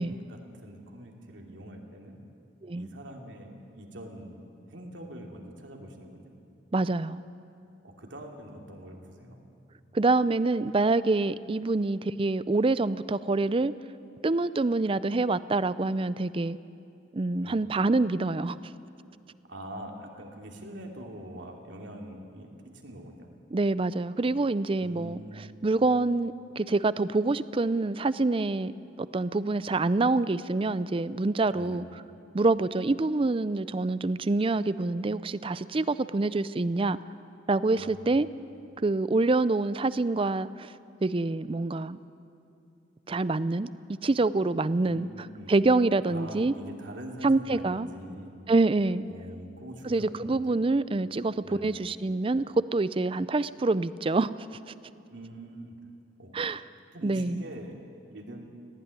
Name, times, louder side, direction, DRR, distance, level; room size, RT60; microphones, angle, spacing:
voice 1, 0.0-2.2 2.7-4.3 4.7-6.3 7.8-9.4 17.4-17.6 19.5-23.3 24.8-25.5 31.5-31.8 37.7-38.2 44.8-45.7 46.1-48.3 49.0-50.6 51.4-51.8 55.1-55.8 56.2-56.3 56.9-57.7 58.1-58.4, right 1 dB, 85° right, 1 dB, 2.8 m, -44 dB
voice 2, 6.7-7.2 9.9-13.7 14.2-16.6 17.1-18.6 23.5-28.7 29.0-31.8 32.3-37.0 37.5-38.3 38.8-40.7 41.0-42.0 43.1-43.7 44.0-45.1 45.5-46.5 47.2-47.9 48.5-49.0 49.8-54.3 56.3-56.6 57.0-57.4, right 3 dB, 30° right, 16 dB, 0.4 m, -26 dB
19.0 x 15.5 x 9.8 m, 2.7 s
head